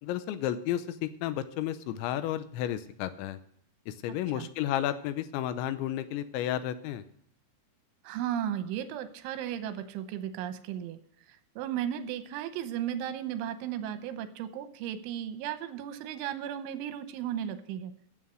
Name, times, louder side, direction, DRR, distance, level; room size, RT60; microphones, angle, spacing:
voice 1, 0.0-3.4 3.9-7.0, left 11 dB, 85° left, 12 dB, 3.0 m, -32 dB
voice 2, 4.1-4.5 8.0-11.0 11.3-17.9, right 10 dB, 85° right, 10 dB, 3.4 m, -35 dB
14.5 x 7.6 x 6.2 m, 0.66 s
omnidirectional pair, 5.4 m